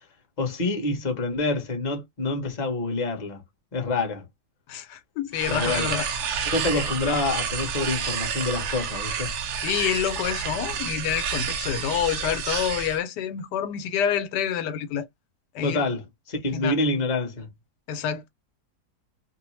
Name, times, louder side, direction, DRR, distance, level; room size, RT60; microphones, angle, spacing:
voice 1, 0.4-3.4 3.7-4.2 5.5-5.9 6.4-9.3 15.6-17.5, left 2 dB, 30° left, 0.9 m, -27 dB
voice 2, 4.7-6.1 6.7-6.9 9.6-15.1 15.5-15.9 16.5-16.7 17.9-18.3, left 9 dB, 90° left, 1.2 m, -27 dB
sound 1, 5.3-13.0, right 6 dB, 70° right, 0.7 m, -29 dB
2.7 x 2.1 x 3.0 m
omnidirectional pair, 1.8 m